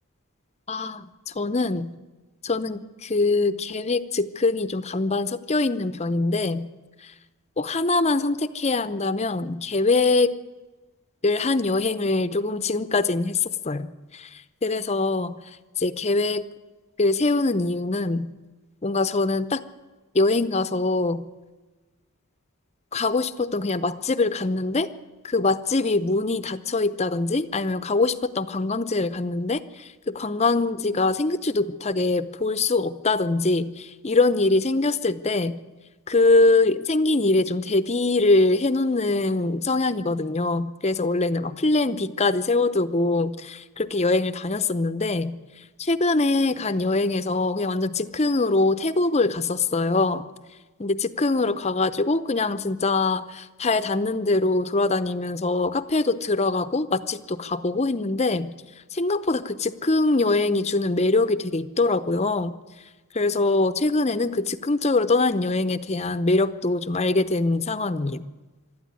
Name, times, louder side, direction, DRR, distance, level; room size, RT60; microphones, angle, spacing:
voice 1, 0.7-1.9 2.4-6.7 7.0-7.1 7.6-10.3 11.2-15.4 15.8-16.4 17.0-18.3 18.8-19.6 20.1-21.2 22.9-24.9 25.2-35.6 36.1-45.3 45.8-50.2 50.8-58.5 58.9-62.5 63.1-68.2, left 3 dB, 30° left, 13 dB, 0.7 m, -23 dB
25.0 x 12.5 x 9.7 m, 1.2 s
head